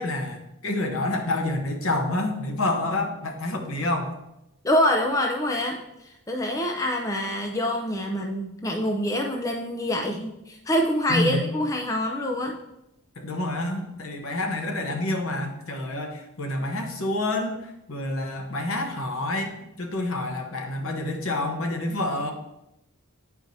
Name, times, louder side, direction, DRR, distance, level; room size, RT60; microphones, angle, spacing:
voice 1, 0.0-4.1 11.1-11.4 13.2-22.3, left 2 dB, 65° left, 3 dB, 0.9 m, -28 dB
voice 2, 4.6-12.6, left 1 dB, 15° left, 1 dB, 0.4 m, -26 dB
8.9 x 4.6 x 2.7 m, 0.87 s
head